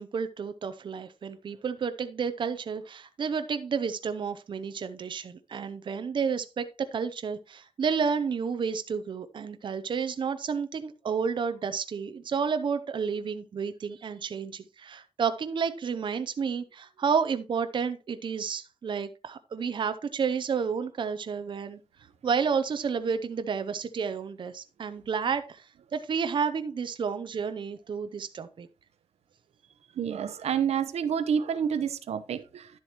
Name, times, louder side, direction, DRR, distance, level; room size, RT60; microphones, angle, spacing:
voice 1, 0.0-21.8 22.2-25.6 25.9-28.7, right 6 dB, 50° right, 0.6 m, -31 dB
voice 2, 30.0-32.7, right 7 dB, 85° right, 0.8 m, -28 dB
11.0 x 7.5 x 3.0 m
wide cardioid pair, 135°, 11 cm